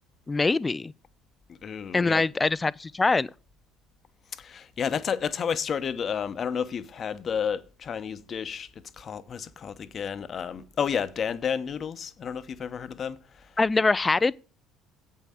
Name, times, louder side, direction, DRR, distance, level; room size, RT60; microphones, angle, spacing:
voice 1, 0.3-0.9 1.9-3.3 13.6-14.3, left 3 dB, 20° left, 0.4 m, -23 dB
voice 2, 1.5-2.2 4.3-8.7 9.0-13.5, left 7 dB, 45° left, 0.9 m, -31 dB
8.2 x 5.6 x 7.7 m
hypercardioid pair, 65°, 0 cm